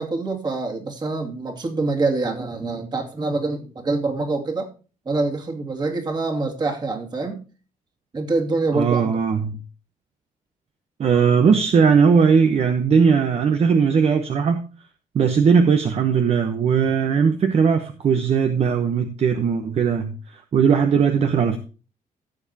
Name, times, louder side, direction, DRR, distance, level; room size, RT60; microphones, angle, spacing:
voice 1, 0.0-4.7 5.1-7.4 8.1-9.2, right 3 dB, 30° right, 2.4 m, -25 dB
voice 2, 8.7-9.6 11.0-14.6 15.1-21.6, right 6 dB, 45° right, 1.0 m, -18 dB
15.5 x 7.2 x 2.9 m
cardioid pair, 145°, 14 cm